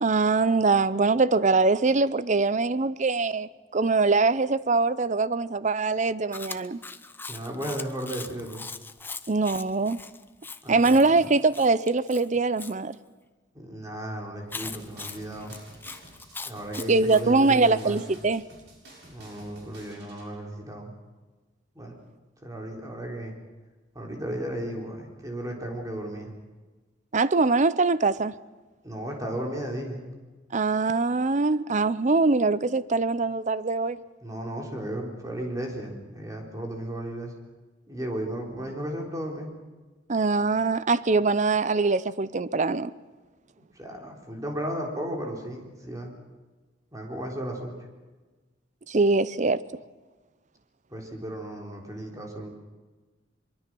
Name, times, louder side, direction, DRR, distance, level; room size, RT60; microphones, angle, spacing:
voice 1, 0.0-6.8 9.3-10.0 10.7-13.0 16.9-18.4 27.1-28.3 30.5-34.0 40.1-42.9 48.9-49.6, right 3 dB, 40° right, 0.6 m, -23 dB
Chewing mastication, 6.3-12.7 14.5-17.2, left 4 dB, 10° left, 0.7 m, -40 dB
voice 2, 7.3-8.7 10.6-11.3 13.6-15.5 16.5-18.0 19.1-21.0 21.8-22.0 22.4-23.3 23.9-26.3 28.8-30.0 34.2-37.3 37.9-39.5 43.8-46.1 46.9-47.8 50.9-52.5, right 1 dB, 20° right, 3.8 m, -35 dB
sound 1, 14.6-20.3, right 1 dB, 60° right, 7.1 m, -50 dB
23.5 x 23.0 x 6.2 m
head